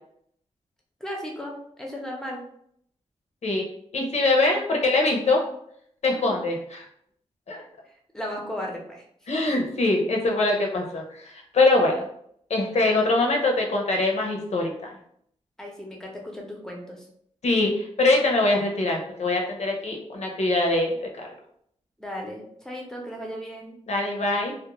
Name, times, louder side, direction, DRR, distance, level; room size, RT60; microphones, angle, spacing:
voice 1, 1.0-2.4 6.1-6.4 8.1-9.0 9.4-9.7 10.0-10.1 15.6-17.1 22.0-23.8, equal, 5° left, -1 dB, 0.7 m, -36 dB
voice 2, 3.9-5.4 6.0-6.8 7.5-7.6 9.3-12.1 12.5-14.9 17.4-21.3 23.9-24.5, left 2 dB, 65° left, 0 dB, 0.6 m, -23 dB
2.4 x 2.1 x 2.9 m, 0.69 s
cardioid pair, 75°, 12 cm